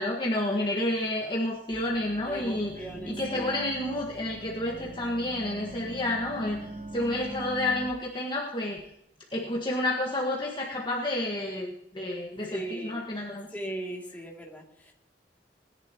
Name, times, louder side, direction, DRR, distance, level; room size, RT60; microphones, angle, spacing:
voice 1, 0.0-2.7 3.0-8.8 9.3-13.5, left 1 dB, 25° left, -2 dB, 1.5 m, -30 dB
sound 1, 1.7-7.9, right 1 dB, 40° right, 0.9 m, -42 dB
voice 2, 2.3-3.5 12.5-13.0 13.5-14.9, right 1 dB, 10° left, -2 dB, 2.5 m, -38 dB
20.5 x 11.0 x 3.0 m, 0.78 s
head